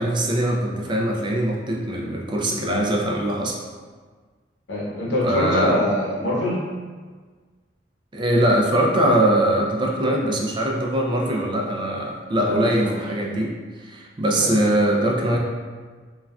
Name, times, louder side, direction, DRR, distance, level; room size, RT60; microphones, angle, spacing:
voice 1, 0.0-3.6 5.2-5.8 8.1-15.4, right 1 dB, 25° right, -1 dB, 0.3 m, -22 dB
voice 2, 4.7-6.7 12.4-13.0 14.4-14.6, left 1 dB, 85° left, -5 dB, 0.8 m, -24 dB
3.4 x 2.3 x 2.2 m, 1.5 s
head